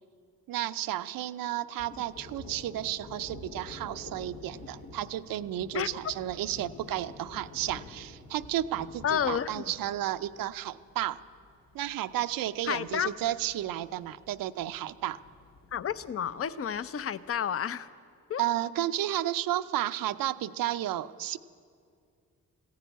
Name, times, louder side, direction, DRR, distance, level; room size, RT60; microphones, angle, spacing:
voice 1, 0.5-11.2 11.7-15.2 18.4-21.4, right 13 dB, 80° right, 12 dB, 0.6 m, -32 dB
Thunder, 1.8-17.3, left 2 dB, 75° left, 1.4 m, -49 dB
voice 2, 9.0-9.6 12.7-13.1 15.7-17.9 18.3-18.4, left 8 dB, 45° left, 15 dB, 0.6 m, -30 dB
15.0 x 10.5 x 9.2 m, 2.3 s
cardioid pair, 70°, 33 cm